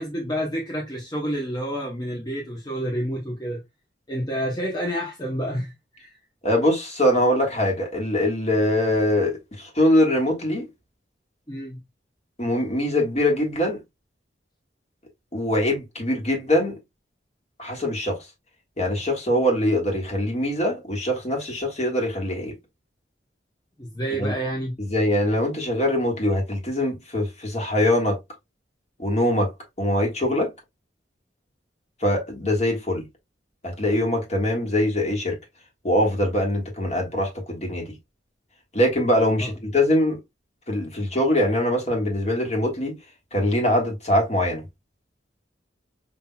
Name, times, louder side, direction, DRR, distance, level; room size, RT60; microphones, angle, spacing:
voice 1, 0.0-3.6 4.1-6.1 11.5-11.8 23.8-24.7, equal, 20° left, 0.9 m, -29 dB
voice 2, 6.4-10.7 12.4-13.8 15.3-16.7 17.6-18.2 18.8-22.5 24.2-24.3 24.9-28.2 29.0-29.5 29.8-30.5 32.0-33.0 33.8-35.4 35.8-37.9 38.7-40.2 40.7-42.9 43.3-44.6, left 1 dB, 35° left, 1.6 m, -23 dB
5.6 x 2.8 x 2.2 m
head